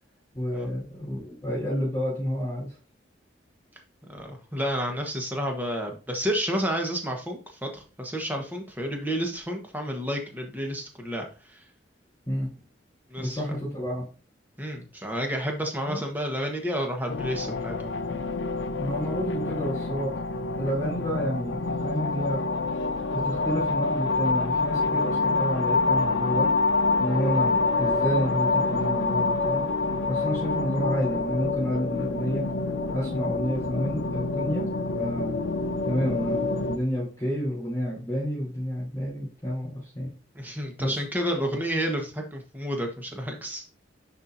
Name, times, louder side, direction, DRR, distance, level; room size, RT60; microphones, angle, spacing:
voice 1, 0.3-2.7 12.3-12.5 13.2-14.0 15.9-16.0 18.8-20.1 20.6-22.5 23.1-26.5 27.0-29.6 30.1-32.5 32.9-34.7 35.0-35.3 35.9-40.1 40.8-40.9, equal, 15° left, -7 dB, 3.8 m, -29 dB
voice 2, 4.1-11.6 13.1-13.4 14.6-17.9 27.2-27.3 30.2-30.3 40.3-43.6, equal, 10° right, 2 dB, 1.2 m, -30 dB
sound 1, 17.1-36.8, left 3 dB, 80° left, 0.6 m, -27 dB
10.5 x 4.4 x 2.7 m, 0.35 s
head